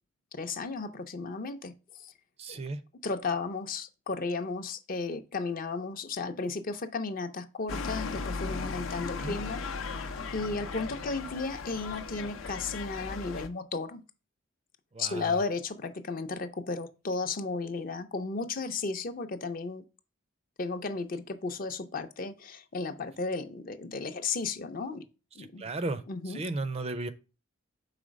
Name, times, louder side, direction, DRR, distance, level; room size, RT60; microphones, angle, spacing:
voice 1, 0.3-2.1 2.5-2.6 3.0-9.6 9.9-10.0 10.3-14.0 15.0-19.8 20.6-25.0 25.4-25.7 26.1-26.4, left 4 dB, 45° left, 0.5 m, -34 dB
voice 2, 2.4-2.8 9.0-9.4 14.9-15.4 25.4-27.1, right 2 dB, 30° right, 0.4 m, -35 dB
sound 1, 7.7-13.5, left 4 dB, 85° left, 0.6 m, -37 dB
4.9 x 4.0 x 5.1 m
head